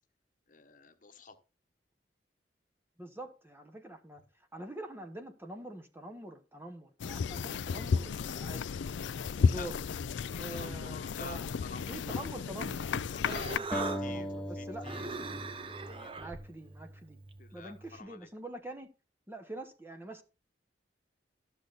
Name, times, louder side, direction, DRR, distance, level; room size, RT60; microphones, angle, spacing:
voice 1, 0.5-1.4 9.5-9.7 10.3-12.4 13.1-14.3 14.6-15.1 15.6-16.3 17.4-18.3, left 3 dB, 45° left, 1.1 m, -48 dB
voice 2, 3.0-8.7 9.4-9.8 10.4-11.5 11.9-12.9 13.2-15.1 16.2-17.2 17.5-18.9 19.3-20.2, right 1 dB, 15° right, 1.0 m, -45 dB
sound 1, 7.0-13.6, left 5 dB, 80° left, 0.4 m, -33 dB
Human voice, 12.8-18.0, right 4 dB, 30° right, 0.7 m, -42 dB
sound 2, 13.7-16.9, equal, 5° left, 1.0 m, -39 dB
12.5 x 6.6 x 4.1 m
head